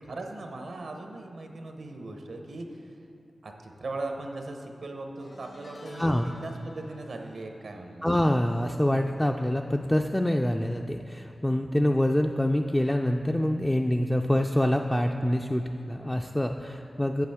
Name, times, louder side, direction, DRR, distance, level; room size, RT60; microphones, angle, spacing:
voice 1, 0.0-3.0 3.4-8.1, right 2 dB, 80° right, 3 dB, 0.7 m, -39 dB
sound 1, 5.2-10.6 10.8-11.2 12.5-12.6, left 1 dB, 55° left, 1.0 m, -51 dB
voice 2, 6.0-6.3 8.0-17.3, left 1 dB, 15° left, 3 dB, 0.3 m, -26 dB
7.9 x 7.6 x 3.5 m, 2.7 s
cardioid pair, 55°, 0 cm